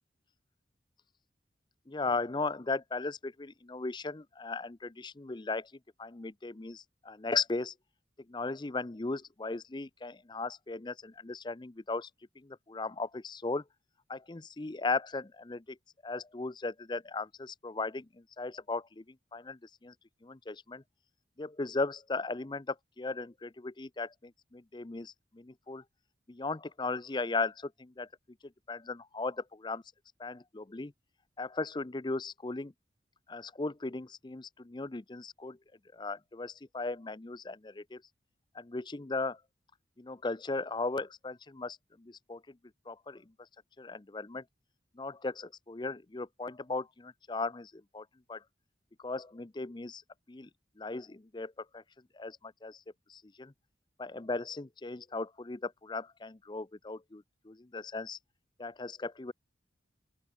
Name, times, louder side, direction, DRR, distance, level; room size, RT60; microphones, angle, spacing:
voice 1, 1.9-5.7 6.0-7.7 8.3-12.1 12.4-13.6 14.1-15.8 16.0-19.0 19.3-19.9 20.2-20.8 21.4-25.8 26.3-28.1 28.7-29.8 30.2-30.9 31.4-32.7 33.3-35.6 35.9-38.0 38.5-39.4 40.0-42.6 42.9-43.2 43.8-44.4 45.0-48.4 49.0-50.0 50.3-50.5 50.8-51.8 52.1-52.8 53.1-53.5 54.0-58.2 58.6-59.3, left 3 dB, 25° left, 0.6 m, -37 dB
open air
head